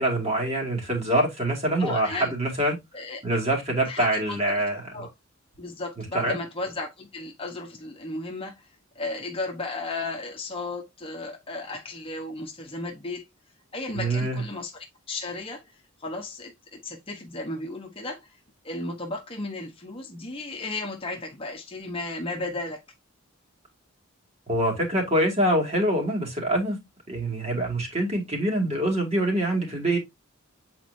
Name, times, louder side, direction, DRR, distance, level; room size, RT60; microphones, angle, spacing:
voice 1, 0.0-2.8 3.2-5.0 6.0-6.4 13.9-14.4 24.5-26.8 27.1-30.0, right 1 dB, 30° right, 2.4 m, -25 dB
voice 2, 1.8-2.3 2.9-3.2 3.9-4.4 4.9-5.1 5.6-8.7 8.9-13.3 13.7-15.6 16.0-18.3 18.6-22.8, left 2 dB, 25° left, 1.1 m, -34 dB
8.1 x 4.4 x 2.7 m
head